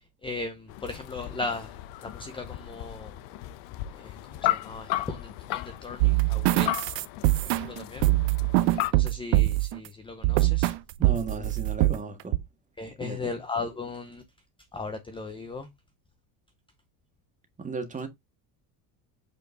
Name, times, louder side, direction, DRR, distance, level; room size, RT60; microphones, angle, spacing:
voice 1, 0.2-0.5 0.8-1.7 2.1-3.1 4.0-4.1 4.4-5.2 5.5-6.7 7.4-8.0 9.0-10.7 12.8-14.2 14.7-15.7, left 3 dB, 10° left, 0.7 m, -36 dB
sound 1, 0.7-8.9, left 15 dB, 65° left, 0.9 m, -35 dB
sound 2, 6.0-9.8 10.2-10.8 11.0-12.0 12.3-12.4, right 19 dB, 80° right, 1.0 m, -23 dB
voice 2, 11.0-12.4 13.0-13.4 17.6-18.1, right 4 dB, 15° right, 1.6 m, -35 dB
8.3 x 4.4 x 3.8 m
cardioid pair, 160°, 47 cm